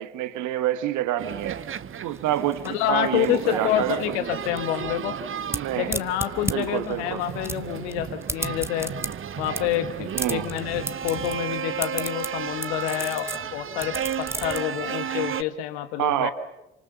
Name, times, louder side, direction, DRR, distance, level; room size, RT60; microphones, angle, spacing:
voice 1, 0.0-1.6 2.0-4.0 5.5-5.9 6.5-7.2 10.1-10.5 16.0-16.3, right 12 dB, 60° right, 1.5 m, -27 dB
sound 1, 1.2-15.4, right 8 dB, 35° right, 1.0 m, -34 dB
sound 2, 2.1-14.6, right 1 dB, 5° right, 1.5 m, -34 dB
voice 2, 2.6-5.1 5.8-8.9 9.4-16.3, left 12 dB, 75° left, 1.5 m, -28 dB
28.0 x 26.5 x 7.1 m
figure-of-eight pair, 45°, 34 cm